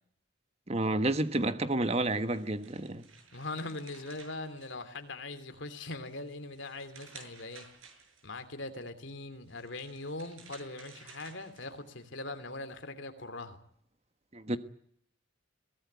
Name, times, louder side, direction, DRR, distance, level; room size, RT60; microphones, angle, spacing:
voice 1, 0.7-3.0 14.3-14.6, right 2 dB, 30° right, 1.4 m, -30 dB
sound 1, 1.9-5.3 5.7-8.4 9.3-12.0, right 5 dB, 80° right, 6.6 m, -55 dB
voice 2, 3.3-7.7 8.2-13.6, left 2 dB, 65° left, 2.9 m, -41 dB
22.5 x 17.5 x 9.4 m
head